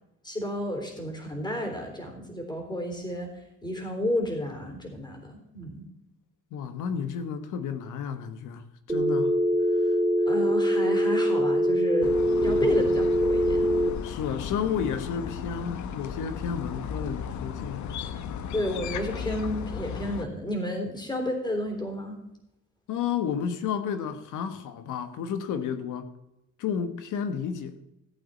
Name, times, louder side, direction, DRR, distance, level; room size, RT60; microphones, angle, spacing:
voice 1, 0.2-3.3 3.6-5.9 10.3-13.7 18.5-22.2, left 1 dB, 15° left, 3.8 m, -31 dB
voice 2, 6.5-8.6 8.9-9.4 9.7-10.0 12.4-12.7 14.0-18.2 22.9-26.1 26.6-27.7, left 7 dB, 85° left, 1.3 m, -32 dB
Telephone, 8.9-13.9, equal, 10° right, 1.3 m, -23 dB
sound 1, 12.0-20.3, left 7 dB, 70° left, 1.0 m, -35 dB
16.0 x 8.4 x 4.2 m
cardioid pair, 90°, 30 cm